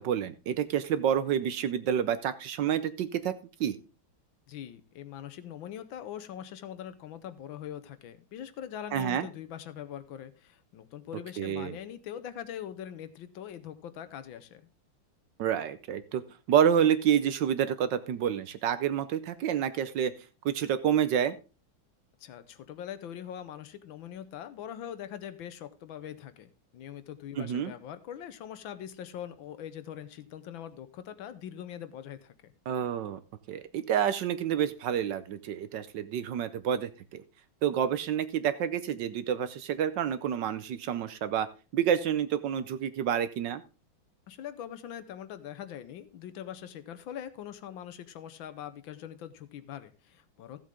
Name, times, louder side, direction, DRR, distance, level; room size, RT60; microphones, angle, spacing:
voice 1, 0.0-3.3 3.6-3.8 8.9-9.3 11.4-11.7 15.4-16.2 16.5-20.1 20.4-21.3 27.4-27.7 32.7-33.2 33.5-37.2 37.6-41.5 41.7-43.6, right 9 dB, 70° right, 13 dB, 1.2 m, -28 dB
voice 2, 4.5-14.7 22.2-32.5 44.3-50.6, left 10 dB, 75° left, 12 dB, 1.5 m, -42 dB
14.5 x 7.5 x 3.7 m, 0.32 s
omnidirectional pair, 2.3 m